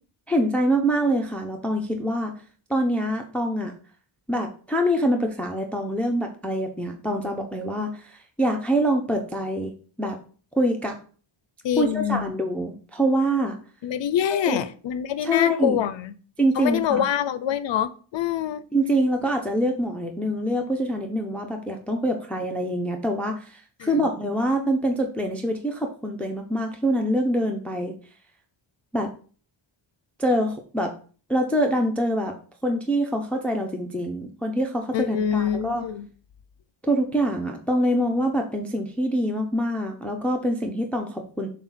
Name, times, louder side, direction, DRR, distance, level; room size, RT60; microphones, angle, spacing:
voice 1, 0.3-2.3 2.7-3.7 4.3-9.7 10.0-10.2 10.6-11.0 11.8-13.6 14.3-14.6 15.2-15.8 16.4-17.1 18.7-28.0 28.9-29.1 30.2-30.9 31.3-32.4 32.6-35.8 36.8-41.5, equal, 5° left, 0.5 m, -25 dB
voice 2, 11.6-12.3 13.8-16.1 16.6-18.6 23.8-24.0 34.9-36.1, left 10 dB, 65° left, 0.6 m, -25 dB
7.2 x 2.4 x 5.6 m
wide cardioid pair, 150°, 48 cm